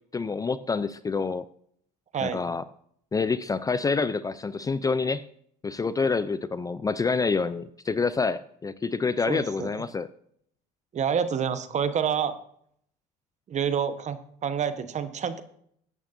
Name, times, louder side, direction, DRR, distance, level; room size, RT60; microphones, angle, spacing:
voice 1, 0.1-1.5 2.2-2.6 3.1-5.3 5.6-10.1, left 4 dB, 20° left, 15 dB, 0.5 m, -27 dB
voice 2, 2.1-2.5 9.3-9.8 10.9-12.3 13.5-15.4, right 7 dB, 40° right, 11 dB, 1.2 m, -28 dB
16.5 x 9.0 x 2.7 m, 0.67 s
supercardioid pair, 85°, 18 cm